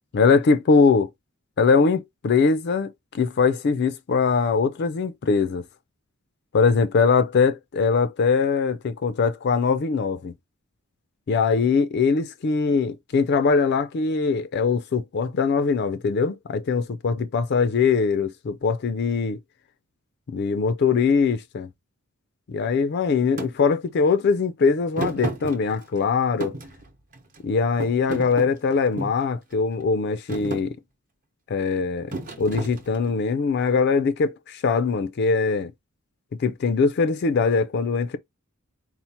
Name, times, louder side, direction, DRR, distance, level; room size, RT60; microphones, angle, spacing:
voice 1, 0.1-1.1 1.6-5.6 6.5-10.3 11.3-19.4 20.3-21.7 22.5-26.5 27.4-30.8 31.5-35.7 36.4-38.2, left 5 dB, 50° left, 0.4 m, -22 dB
Thump thud, 23.4-23.5 25.0-26.0 26.4-27.4 27.8-29.2 29.8-30.0 30.3-30.7 32.1-33.2, right 2 dB, 40° right, 0.8 m, -32 dB
4.4 x 2.0 x 4.1 m
head